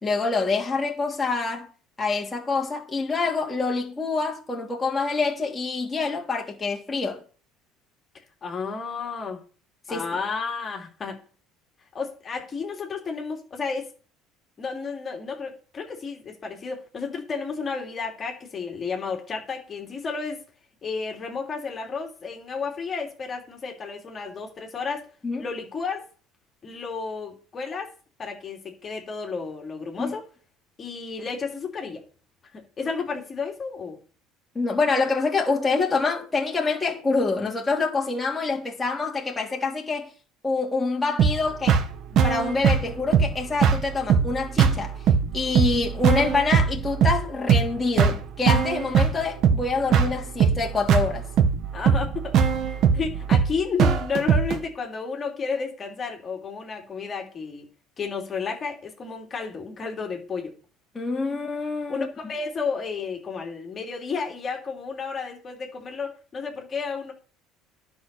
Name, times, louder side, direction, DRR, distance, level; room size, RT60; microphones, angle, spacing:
voice 1, 0.0-1.7 2.0-7.2 9.9-10.1 25.2-25.4 30.0-30.1 34.5-40.1 40.4-41.8 42.2-45.0 45.3-51.3 60.9-62.1, left 4 dB, 15° left, 3.3 m, -26 dB
voice 2, 8.1-9.4 9.9-11.2 11.9-13.9 14.6-20.4 20.8-25.0 25.4-26.1 26.6-27.9 28.2-30.2 30.8-32.0 32.5-34.0 51.7-52.4 52.6-57.7 58.0-60.5 61.9-67.1, left 5 dB, 35° left, 3.2 m, -32 dB
sound 1, 41.2-54.6, right 7 dB, 55° right, 1.4 m, -21 dB
10.5 x 5.7 x 6.9 m
supercardioid pair, 100°, 0 cm